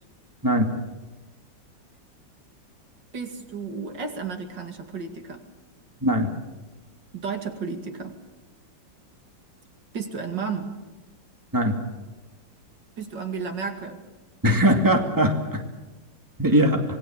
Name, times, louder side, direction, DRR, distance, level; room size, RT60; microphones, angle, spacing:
voice 1, 3.1-5.4 7.1-8.2 9.9-10.8 13.0-14.0, right 5 dB, 70° right, 5 dB, 2.9 m, -32 dB
voice 2, 6.0-6.3 11.5-11.8 14.4-15.6 16.4-16.8, equal, 10° right, 4 dB, 2.3 m, -20 dB
26.0 x 20.5 x 7.3 m, 1.1 s
omnidirectional pair, 2.0 m